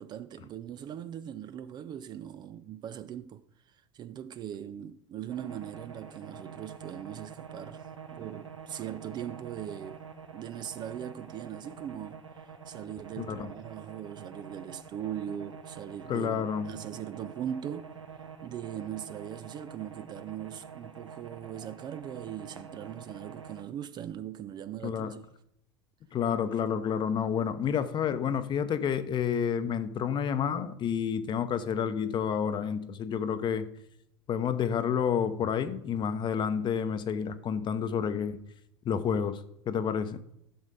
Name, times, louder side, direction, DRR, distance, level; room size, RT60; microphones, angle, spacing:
voice 1, 0.0-7.9 8.1-10.0 10.3-17.9 18.4-25.2, right 10 dB, 30° right, 0.4 m, -40 dB
sound 1, 5.3-23.6, right 6 dB, 85° right, 0.8 m, -47 dB
voice 2, 13.2-13.5 16.1-16.7 24.8-25.1 26.1-33.7 34.3-38.4 38.8-40.2, left 7 dB, 30° left, 0.8 m, -29 dB
14.0 x 6.3 x 3.9 m
figure-of-eight pair, 80°, 15 cm